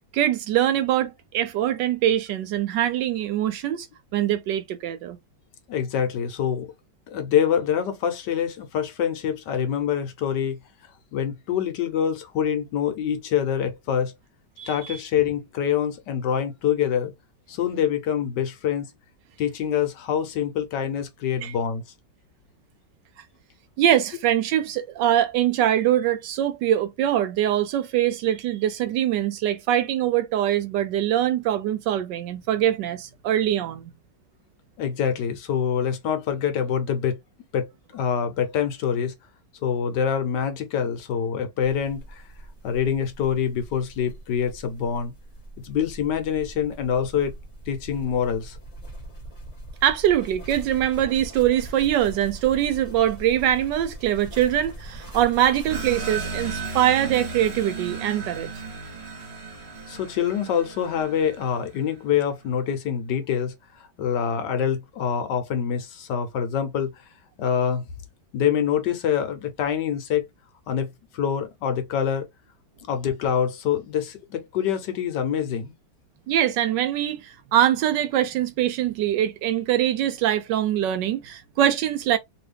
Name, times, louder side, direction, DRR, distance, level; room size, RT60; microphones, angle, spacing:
voice 1, 0.1-3.9 4.1-5.2 14.6-14.7 21.4-21.5 23.8-33.8 49.8-58.5 76.3-82.2, right 11 dB, 75° right, 1.1 m, -23 dB
voice 2, 5.7-6.7 7.1-10.6 11.1-14.1 14.6-17.1 17.5-18.9 19.4-21.8 34.8-37.2 37.5-39.1 39.6-42.2 42.6-45.1 45.6-47.3 47.7-48.6 59.9-66.9 67.4-67.8 68.3-70.2 70.7-72.3 72.9-75.7, left 8 dB, 70° left, 1.2 m, -25 dB
sound 1, 41.6-56.0, right 1 dB, 25° left, 1.0 m, -41 dB
Bumper drops, 55.7-62.0, right 4 dB, 45° right, 0.9 m, -35 dB
3.0 x 2.7 x 3.3 m
omnidirectional pair, 2.1 m